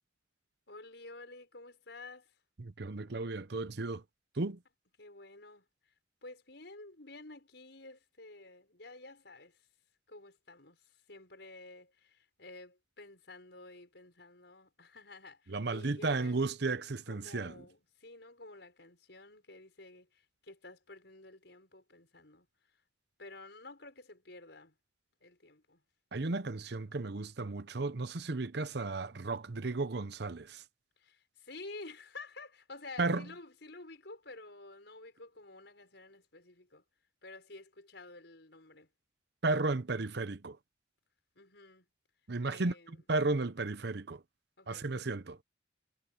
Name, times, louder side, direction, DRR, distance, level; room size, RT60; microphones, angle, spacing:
voice 1, 0.7-2.3 5.0-5.9 6.2-9.7 10.1-16.4 17.1-22.8 23.2-24.7 25.2-25.8 31.0-36.8 37.2-38.9 41.3-41.9 42.4-43.0 44.6-44.9, left 2 dB, 65° left, 6.5 m, -51 dB
voice 2, 2.6-4.0 4.4-4.6 15.5-17.5 26.1-30.6 33.0-33.2 39.4-40.6 42.3-44.2 44.7-45.4, right 3 dB, 60° right, 0.8 m, -34 dB
head